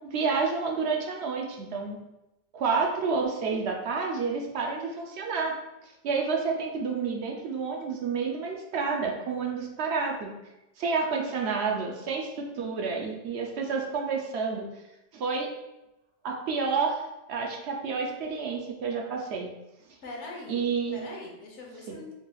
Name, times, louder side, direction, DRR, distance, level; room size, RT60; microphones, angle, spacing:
voice 1, 0.0-2.0 2.5-5.5 5.8-10.3 10.8-14.7 15.1-15.5 16.2-17.0 17.3-19.5 20.5-21.0 21.9-22.0, right 5 dB, 70° right, 1 dB, 0.8 m, -29 dB
voice 2, 20.0-20.7 20.9-22.1, left 2 dB, 80° left, -1 dB, 1.2 m, -42 dB
4.6 x 3.1 x 2.3 m, 0.94 s
omnidirectional pair, 1.2 m